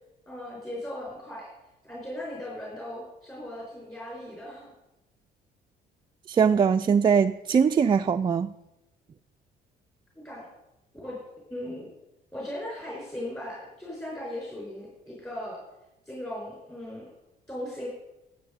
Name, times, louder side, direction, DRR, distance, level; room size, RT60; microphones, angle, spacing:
voice 1, 0.3-1.5 1.8-4.7 10.2-10.5 11.0-11.2 11.5-11.9 12.3-15.6 16.1-17.1 17.5-17.9, left 1 dB, 15° left, -4 dB, 4.5 m, -38 dB
voice 2, 6.3-8.5, right 6 dB, 25° right, 5 dB, 0.4 m, -21 dB
13.0 x 8.1 x 5.1 m, 0.94 s
cardioid pair, 110°, 17 cm